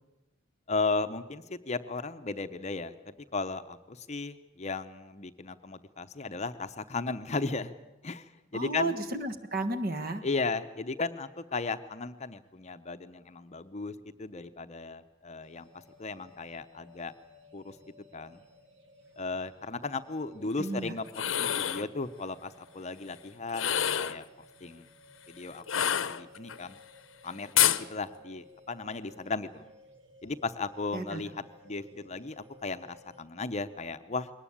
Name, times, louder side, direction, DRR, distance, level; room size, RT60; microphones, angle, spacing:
voice 1, 0.7-7.8 8.0-8.9 10.2-15.7 16.0-17.1 17.5-17.8 18.1-18.4 19.2-24.3 24.6-24.9 25.3-26.8 27.2-29.6 30.2-34.3, left 3 dB, 35° left, 10 dB, 0.7 m, -36 dB
voice 2, 8.5-10.2 20.6-20.9 30.9-31.2, right 2 dB, 50° right, 10 dB, 1.6 m, -33 dB
sound 1, 15.4-33.2, equal, 70° right, 3.5 m, -57 dB
sound 2, 21.1-21.9 23.5-24.2 25.7-26.6 27.6-27.8, left 10 dB, 80° left, 0.8 m, -27 dB
22.0 x 18.5 x 8.6 m, 1.0 s
head